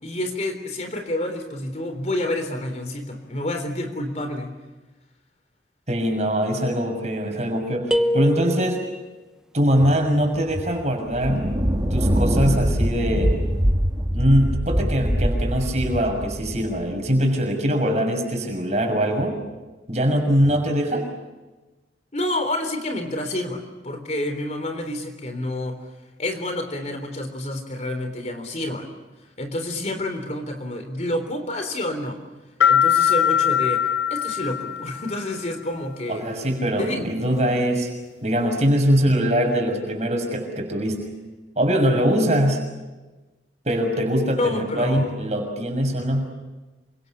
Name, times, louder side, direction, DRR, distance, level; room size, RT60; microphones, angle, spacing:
voice 1, 0.0-4.5 22.1-25.9 26.2-28.9 29.4-32.2 32.7-36.2 36.8-37.0 44.4-45.2, left 1 dB, 40° left, 6 dB, 3.6 m, -29 dB
voice 2, 5.9-8.9 9.5-11.5 11.9-13.3 14.1-19.4 19.9-21.1 36.1-37.9 38.2-41.1 41.6-42.7 43.6-46.3, equal, 40° right, 4 dB, 6.5 m, -22 dB
sound 1, 7.9-9.1, equal, 5° right, 0.9 m, -24 dB
sound 2, 10.5-10.6 11.1-17.1, equal, 25° right, 2.8 m, -23 dB
sound 3, 32.6-35.3, left 9 dB, 85° left, 1.0 m, -21 dB
28.0 x 25.5 x 7.3 m, 1.2 s
head